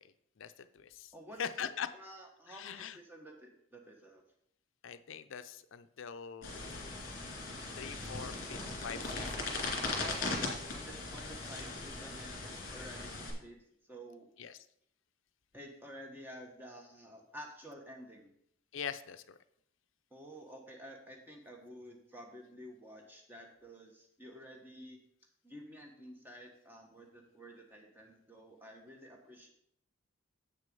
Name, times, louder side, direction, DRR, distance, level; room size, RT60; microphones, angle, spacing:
voice 1, 0.4-1.1 1.4-1.9 2.5-3.0 4.8-7.0 7.7-10.6 14.4-14.6 18.7-19.4, left 7 dB, 65° left, 12 dB, 0.5 m, -43 dB
voice 2, 1.1-4.2 10.0-13.6 13.9-14.3 15.5-18.3 20.1-25.0 25.4-29.5, equal, 10° right, 1 dB, 1.3 m, -51 dB
sound 1, 6.4-13.3, left 2 dB, 40° left, 2.1 m, -39 dB
7.6 x 6.4 x 5.4 m, 0.70 s
head